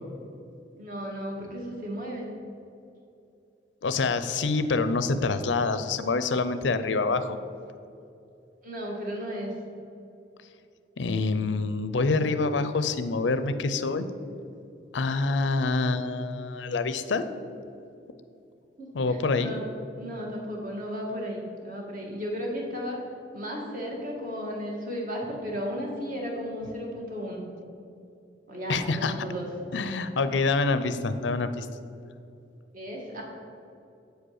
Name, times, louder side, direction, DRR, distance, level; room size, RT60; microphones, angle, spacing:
voice 1, 0.7-2.3 8.6-9.5 18.8-19.6 20.0-23.0 23.3-27.4 28.5-29.5 32.7-33.2, equal, 50° right, -1 dB, 1.8 m, -34 dB
voice 2, 3.8-7.4 11.0-14.1 14.9-17.3 18.9-19.5 28.7-29.1 29.7-31.7, left 3 dB, 85° left, 11 dB, 0.5 m, -26 dB
8.1 x 5.1 x 6.5 m, 2.7 s
head